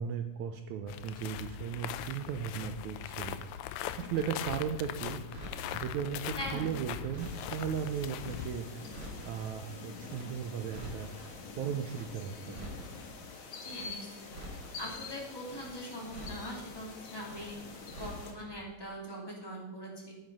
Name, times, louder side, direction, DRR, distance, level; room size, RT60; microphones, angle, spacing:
voice 1, 0.0-3.4 3.6-5.5 5.7-12.7, right 8 dB, 75° right, 6 dB, 1.9 m, -37 dB
sound 1, 0.9-8.5, left 11 dB, 90° left, 1.6 m, -40 dB
Crackle, 5.3-5.9 6.4-7.7 8.2-8.5 8.8-9.5 10.0-10.3 10.6-11.3 11.8-12.1 12.4-13.1 13.6-13.9 14.2-14.9 15.4-15.7 16.0-16.7 17.2-17.5 17.8-18.5 18.8-18.9, right 1 dB, 40° right, 4.2 m, -47 dB
voice 2, 6.3-6.7 13.6-14.3 14.8-17.6 17.9-20.1, equal, 10° left, -3 dB, 2.4 m, -42 dB
sound 2, 7.2-18.3, left 4 dB, 70° left, 3.2 m, -46 dB
9.5 x 9.1 x 5.5 m, 1.1 s
omnidirectional pair, 3.8 m